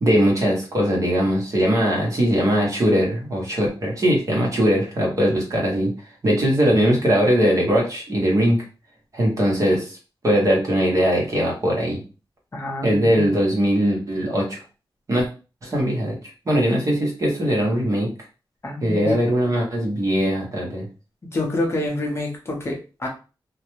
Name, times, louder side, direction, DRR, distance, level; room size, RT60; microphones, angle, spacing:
voice 1, 0.0-5.9 6.2-8.6 9.1-10.0 10.2-12.0 12.8-14.6 15.1-15.3 15.6-16.2 16.5-18.1 18.8-20.9, equal, 40° right, -2 dB, 0.9 m, -20 dB
voice 2, 12.5-13.3 18.6-19.2 21.3-23.1, left 2 dB, 30° left, -1 dB, 0.6 m, -27 dB
2.4 x 2.1 x 3.0 m, 0.33 s
wide cardioid pair, 165°, 8 cm